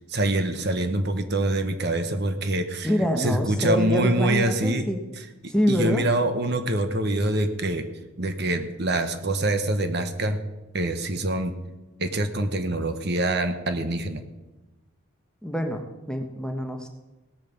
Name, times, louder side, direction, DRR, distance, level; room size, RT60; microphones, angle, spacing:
voice 1, 0.0-2.9 3.2-4.9 5.2-7.8 8.2-10.4 10.7-11.5 12.0-14.2, right 1 dB, 50° right, 8 dB, 1.2 m, -25 dB
voice 2, 2.8-5.0 5.5-6.0 15.4-15.8 16.1-16.9, equal, 5° left, 3 dB, 1.3 m, -25 dB
17.5 x 8.9 x 7.1 m, 1.1 s
head